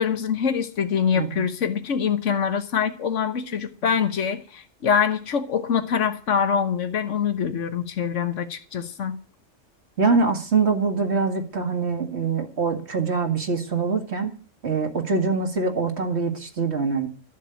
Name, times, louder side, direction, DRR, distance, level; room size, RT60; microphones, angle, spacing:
voice 1, 0.0-9.1, left 7 dB, 70° left, 1.5 m, -24 dB
voice 2, 10.0-14.3 14.6-17.1, right 4 dB, 55° right, 2.1 m, -24 dB
13.0 x 7.4 x 9.1 m
omnidirectional pair, 1.3 m